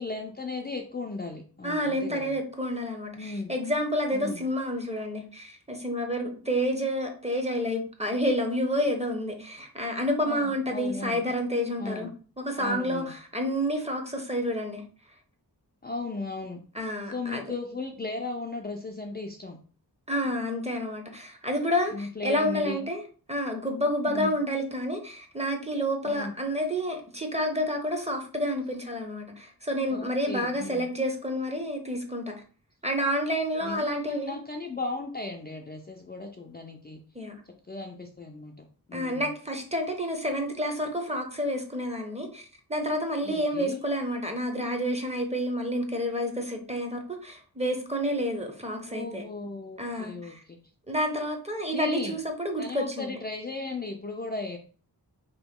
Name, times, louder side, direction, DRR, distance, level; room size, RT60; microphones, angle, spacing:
voice 1, 0.0-2.3 3.1-3.5 4.1-4.4 10.2-11.2 11.8-12.1 12.6-13.1 15.8-16.6 17.1-19.6 21.9-22.9 24.0-24.4 26.0-26.4 29.9-30.9 33.6-37.0 37.7-39.3 43.2-43.8 48.9-50.6 51.7-52.2 52.6-54.6, left 3 dB, 25° left, 2 dB, 0.4 m, -36 dB
voice 2, 1.6-12.1 12.4-14.8 16.7-17.4 20.1-23.0 23.3-32.3 32.8-34.4 37.1-37.4 38.9-49.2 49.8-50.4 50.9-53.1, equal, 15° right, 4 dB, 0.8 m, -29 dB
3.0 x 3.0 x 3.6 m, 0.40 s
wide cardioid pair, 100°, 39 cm